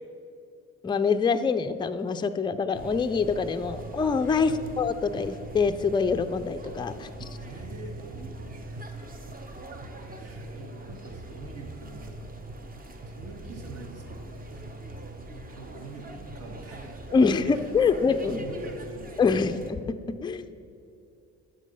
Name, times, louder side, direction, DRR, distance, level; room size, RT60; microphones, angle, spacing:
voice 1, 0.8-4.5 4.8-7.3 17.1-18.4 19.2-19.9 20.2-20.5, left 5 dB, 15° left, 9 dB, 0.4 m, -25 dB
sound 1, 2.7-19.7, right 2 dB, 30° right, 0.8 m, -41 dB
voice 2, 7.4-9.0 10.1-12.4 13.1-14.8 15.2-17.0 17.5-19.5, right 2 dB, 55° right, 1 dB, 1.6 m, -45 dB
10.5 x 5.5 x 5.4 m, 2.5 s
cardioid pair, 90°, 30 cm